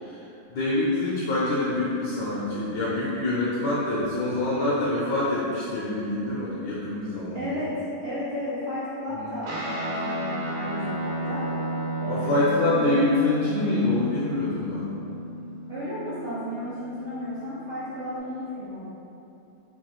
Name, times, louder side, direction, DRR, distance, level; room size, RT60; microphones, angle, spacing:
voice 1, 0.5-7.6 9.1-9.3 12.1-14.9, left 2 dB, 70° left, -7 dB, 1.1 m, -26 dB
voice 2, 7.3-11.5 12.0-13.1 15.7-18.8, equal, 90° right, -13 dB, 0.6 m, -33 dB
Guitar, 9.4-18.2, right 1 dB, 70° right, 1.4 m, -33 dB
4.7 x 2.3 x 2.9 m, 2.8 s
omnidirectional pair, 2.3 m